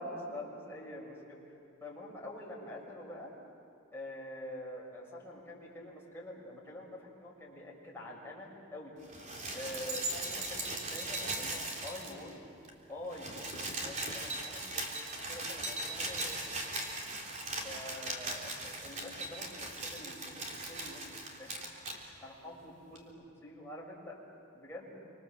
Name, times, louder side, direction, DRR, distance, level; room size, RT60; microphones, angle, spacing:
voice 1, 0.0-1.4 1.8-3.3 3.9-9.0 9.5-12.4 12.9-14.8 15.3-16.5 17.6-21.6 22.2-24.2 24.5-25.0, left 1 dB, 10° left, -4 dB, 6.7 m, -46 dB
sound 1, 9.0-12.4 12.6-12.7 13.0-22.0 23.0-23.1, right 2 dB, 40° right, 3.6 m, -39 dB
28.0 x 26.0 x 7.6 m, 2.7 s
head